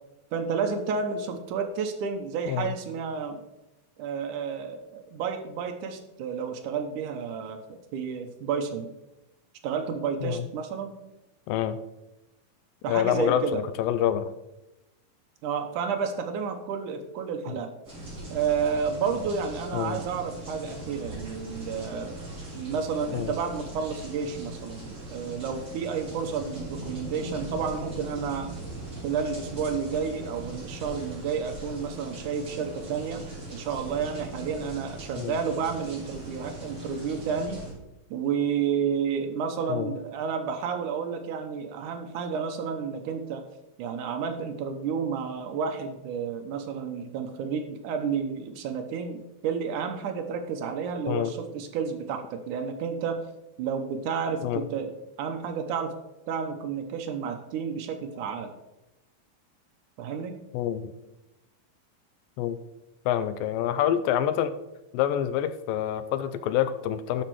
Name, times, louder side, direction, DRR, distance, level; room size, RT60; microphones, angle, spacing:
voice 1, 0.3-3.4 4.0-8.9 9.6-11.0 12.8-13.6 15.4-17.7 18.3-22.1 22.5-28.5 29.0-33.2 33.5-37.6 38.1-43.5 43.8-53.2 53.6-54.9 55.2-56.0 56.3-58.5 60.0-60.4, right 6 dB, 70° right, 6 dB, 2.1 m, -31 dB
voice 2, 11.5-11.8 12.9-14.3 19.7-20.0 23.1-23.3 35.2-35.4 39.7-39.9 51.1-51.3 54.4-54.6 60.5-60.9 62.4-62.6 63.1-64.6 64.9-67.2, left 10 dB, 80° left, 12 dB, 2.2 m, -27 dB
sound 1, 17.8-37.7, right 1 dB, 20° right, 3.8 m, -40 dB
12.0 x 5.9 x 4.6 m, 0.94 s
omnidirectional pair, 4.2 m